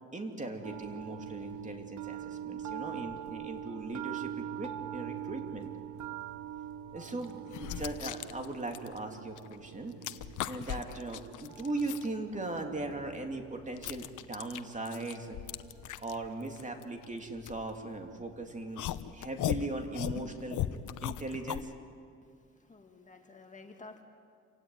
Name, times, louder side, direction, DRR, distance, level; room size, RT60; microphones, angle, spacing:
voice 1, 0.1-5.7 6.9-10.0 10.5-15.4 16.0-18.9 19.1-20.6 21.0-21.7, right 2 dB, 25° right, 4 dB, 2.9 m, -39 dB
sound 1, 0.6-18.6, right 10 dB, 75° right, 0.8 m, -44 dB
sound 2, 6.5-6.6 7.2-9.6 9.8-12.1 12.6-18.2 18.8-21.7, left 12 dB, 80° left, 0.9 m, -38 dB
voice 2, 22.2-24.0, left 3 dB, 25° left, 4 dB, 2.0 m, -52 dB
27.0 x 16.0 x 9.4 m, 2.3 s
cardioid pair, 90°, 30 cm